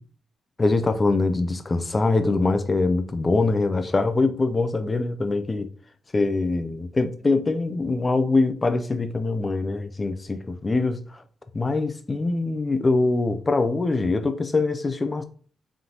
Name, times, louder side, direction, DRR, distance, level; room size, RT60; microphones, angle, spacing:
voice 1, 0.6-5.7 6.1-11.2 11.5-15.2, left 3 dB, 30° left, 0.7 m, -23 dB
3.6 x 2.9 x 3.9 m
cardioid pair, 65°, 0 cm